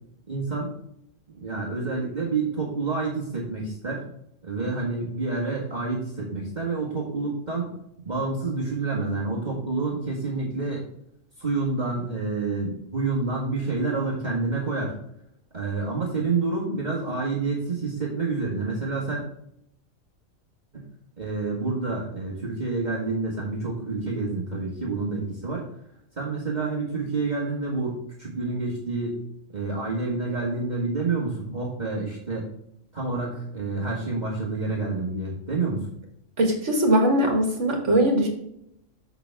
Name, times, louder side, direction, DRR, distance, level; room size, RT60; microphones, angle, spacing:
voice 1, 0.3-0.7 1.3-4.0 4.4-7.7 8.0-10.8 11.4-15.0 15.5-19.2 20.7-20.8 21.2-25.6 26.2-29.2 29.5-32.5 32.9-35.9, right 3 dB, 35° right, -5 dB, 1.8 m, -28 dB
voice 2, 36.4-38.3, right 1 dB, 65° right, 1 dB, 2.2 m, -21 dB
7.2 x 6.9 x 3.6 m, 0.75 s
omnidirectional pair, 1.3 m